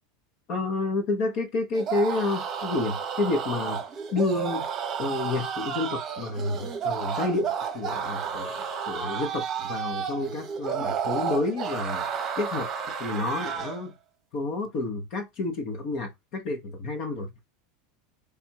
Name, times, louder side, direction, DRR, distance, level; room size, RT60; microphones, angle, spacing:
voice 1, 0.5-3.8 4.1-4.6 5.0-12.0 12.4-12.7 13.0-13.9 14.3-17.3, left 2 dB, 45° left, 1.1 m, -29 dB
sound 1, 1.7-13.8, right 7 dB, 30° right, 0.9 m, -32 dB
3.5 x 2.6 x 4.5 m
supercardioid pair, 145°, 0 cm